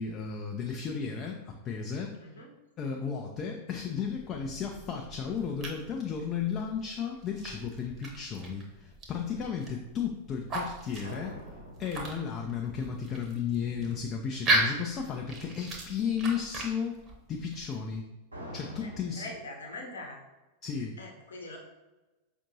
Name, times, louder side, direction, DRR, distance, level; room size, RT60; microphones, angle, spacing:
voice 1, 0.0-2.2 2.8-11.4 11.8-17.0 17.3-18.1 18.5-19.3 20.6-21.0, left 6 dB, 30° left, 1 dB, 0.4 m, -34 dB
sound 1, 3.8-18.0, right 2 dB, 30° right, 0.9 m, -37 dB
sound 2, 11.0-14.0 18.3-19.3, equal, 85° right, 1.0 m, -46 dB
voice 2, 19.2-20.2 21.0-21.6, left 2 dB, 70° left, -1 dB, 0.9 m, -42 dB
5.1 x 2.6 x 2.7 m, 1.1 s
figure-of-eight pair, 90°, 0 cm